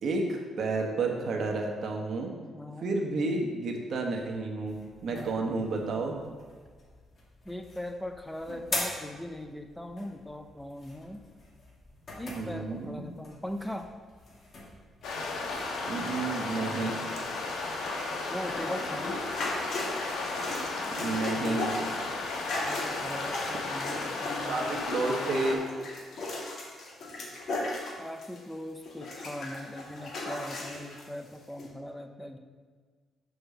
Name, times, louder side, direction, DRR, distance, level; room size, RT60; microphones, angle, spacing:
voice 1, 0.0-2.3 2.8-4.8 5.0-6.2 8.5-8.6 12.3-13.1 15.8-17.0 20.9-21.7 24.5-25.6, right 3 dB, 60° right, 1 dB, 1.3 m, -31 dB
voice 2, 2.5-3.0 5.1-5.5 7.5-11.2 12.2-13.9 18.3-19.1 22.6-24.7 28.0-32.4, left 1 dB, 5° left, 5 dB, 0.6 m, -40 dB
sound 1, 4.7-15.7, left 2 dB, 45° left, 2.4 m, -43 dB
sound 2, 15.0-25.6, left 3 dB, 80° left, 1.3 m, -34 dB
sound 3, 18.5-28.5 28.8-31.0 31.6-31.7, left 2 dB, 60° left, 2.1 m, -37 dB
6.6 x 4.3 x 6.6 m, 1.5 s
cardioid pair, 90°, 0 cm